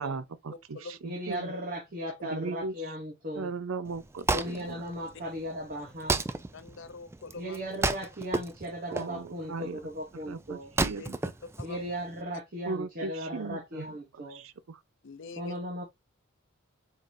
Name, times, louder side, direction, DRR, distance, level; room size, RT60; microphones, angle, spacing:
voice 1, 0.0-1.5 2.2-2.9 3.3-4.9 8.9-9.8 10.1-11.2 12.7-14.8, right 4 dB, 70° right, 0.5 m, -38 dB
voice 2, 1.0-3.5 4.3-6.2 7.3-10.7 11.6-14.4 15.4-15.8, equal, 45° right, 1.0 m, -37 dB
Wood, 3.9-12.2, right 3 dB, 10° right, 0.3 m, -33 dB
voice 3, 6.5-7.6 10.9-11.1 11.6-11.8 15.0-15.6, left 4 dB, 60° left, 0.6 m, -44 dB
4.7 x 3.9 x 2.6 m
head